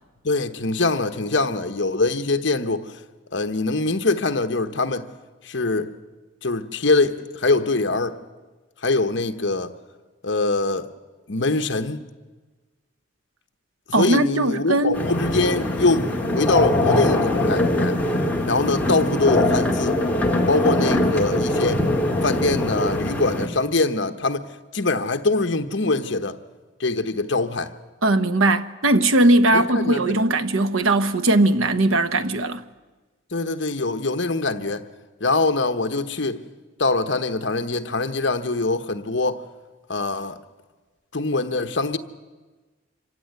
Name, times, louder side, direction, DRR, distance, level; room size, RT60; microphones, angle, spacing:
voice 1, 0.2-3.0 3.3-5.1 5.4-5.9 6.4-8.2 8.8-9.7 10.2-10.9 11.3-12.0 14.0-18.0 18.5-20.0 20.5-21.8 22.2-24.5 24.7-26.4 26.8-27.7 29.5-30.2 33.3-34.9 35.2-36.4 36.8-39.4 39.9-40.4 41.1-42.0, left 3 dB, 60° left, 1.1 m, -23 dB
voice 2, 13.9-15.0 28.0-32.6, right 2 dB, 90° right, 1.0 m, -19 dB
sound 1, 14.9-23.5, left 1 dB, 10° left, 1.8 m, -22 dB
26.0 x 15.5 x 9.5 m
head